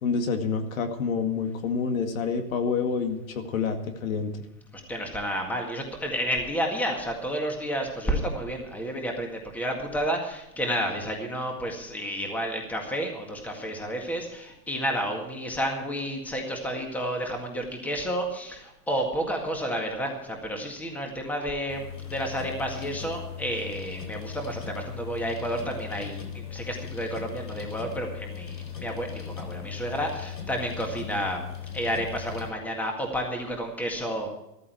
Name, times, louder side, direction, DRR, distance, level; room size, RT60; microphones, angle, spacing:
voice 1, 0.0-4.4, left 5 dB, 55° left, 6 dB, 2.2 m, -28 dB
voice 2, 4.9-31.4 31.7-34.3, equal, 5° left, 2 dB, 1.9 m, -31 dB
sound 1, 21.7-32.5, left 8 dB, 85° left, 3.9 m, -38 dB
14.0 x 14.0 x 4.7 m, 0.89 s
hypercardioid pair, 145°, 47 cm